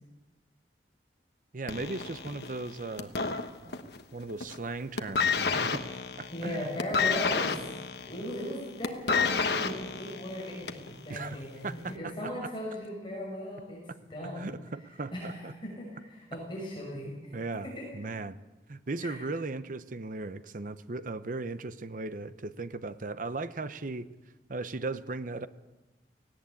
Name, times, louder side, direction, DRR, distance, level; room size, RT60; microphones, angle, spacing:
voice 1, 1.5-3.1 3.6-5.8 6.2-6.7 11.1-12.3 14.2-15.5 17.3-18.4 18.7-24.1 24.5-25.5, right 3 dB, 50° right, 13 dB, 0.8 m, -37 dB
sound 1, 1.7-4.0 4.3-4.7 5.0-10.9 11.8-11.9, left 5 dB, 65° left, 1.2 m, -30 dB
voice 2, 6.3-7.6 8.1-13.8 14.1-14.5 15.1-17.3 17.6-17.9 19.0-19.3, equal, 30° left, -3 dB, 6.2 m, -38 dB
18.0 x 17.0 x 8.4 m, 1.1 s
head